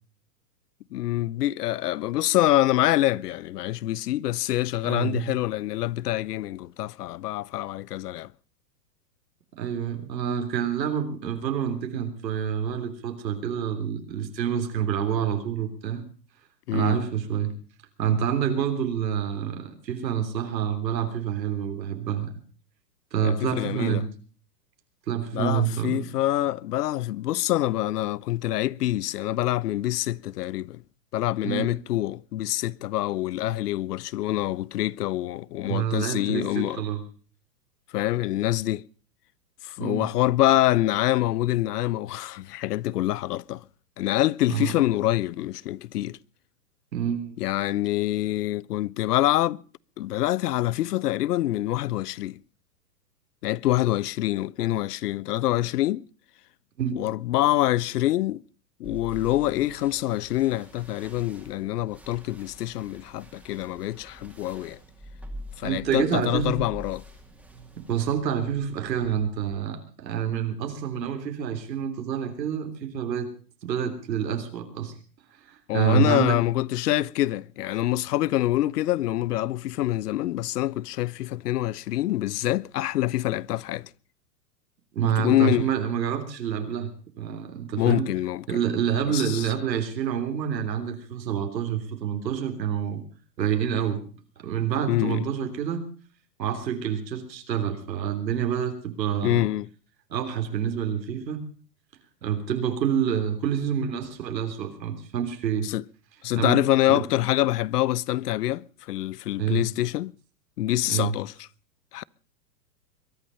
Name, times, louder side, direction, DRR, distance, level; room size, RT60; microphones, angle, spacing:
voice 1, 0.9-8.3 16.7-17.0 23.2-24.0 25.3-30.8 31.1-36.8 37.9-38.8 39.6-43.6 44.0-46.2 47.4-49.6 50.0-52.4 53.4-56.0 57.0-58.4 58.8-64.8 65.6-67.0 75.7-83.9 85.0-85.7 87.8-88.6 89.1-89.5 94.9-95.2 99.2-99.7 105.6-105.8 106.2-110.1 110.6-111.3 111.9-112.0, left 15 dB, 70° left, 0.7 m, -25 dB
voice 2, 4.8-5.3 9.6-16.0 16.7-17.5 18.0-22.4 23.1-24.1 25.1-26.1 31.4-31.7 35.6-37.0 39.8-40.1 44.5-44.7 46.9-47.3 56.8-57.0 65.6-66.6 67.9-73.3 73.6-74.9 75.5-76.4 84.9-88.1 88.5-93.0 93.4-94.0 94.4-95.9 96.4-99.5 100.1-101.4 102.2-105.7 106.4-106.6 106.9-107.0 109.4-109.6 110.9-111.1, right 8 dB, 85° right, 3.5 m, -27 dB
sound 1, 58.8-69.5, right 1 dB, 5° right, 2.3 m, -46 dB
22.0 x 11.0 x 5.5 m
hypercardioid pair, 155°, 49 cm